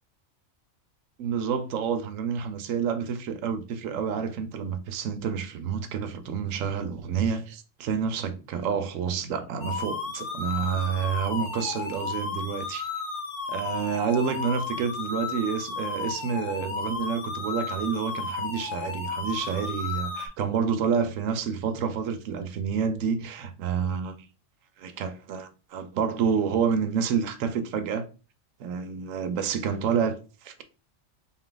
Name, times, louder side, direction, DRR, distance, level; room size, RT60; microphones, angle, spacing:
voice 1, 1.2-12.9 13.5-24.2 24.8-28.1 28.6-30.6, right 7 dB, 70° right, 0.9 m, -29 dB
sound 1, 9.6-20.3, left 4 dB, 50° left, 0.7 m, -33 dB
3.9 x 2.4 x 3.8 m
omnidirectional pair, 1.4 m